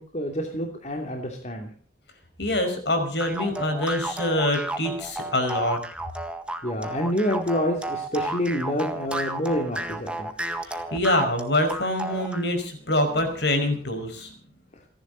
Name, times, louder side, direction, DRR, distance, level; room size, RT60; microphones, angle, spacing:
voice 1, 0.0-1.7 6.6-10.3, equal, 40° left, 3 dB, 2.9 m, -27 dB
voice 2, 2.4-5.8 10.6-14.3, left 1 dB, 65° left, 7 dB, 5.4 m, -25 dB
sound 1, 3.2-12.5, right 1 dB, 5° right, 1.7 m, -32 dB
29.0 x 11.0 x 4.0 m, 0.40 s
head